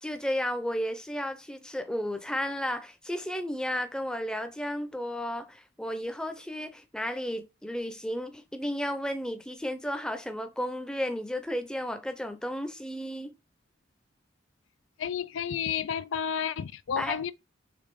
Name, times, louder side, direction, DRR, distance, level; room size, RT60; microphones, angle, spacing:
voice 1, 0.0-13.3 17.0-17.2, equal, 5° left, 0.6 m, -33 dB
voice 2, 15.0-17.3, left 8 dB, 80° left, 0.4 m, -31 dB
5.1 x 3.6 x 5.3 m
head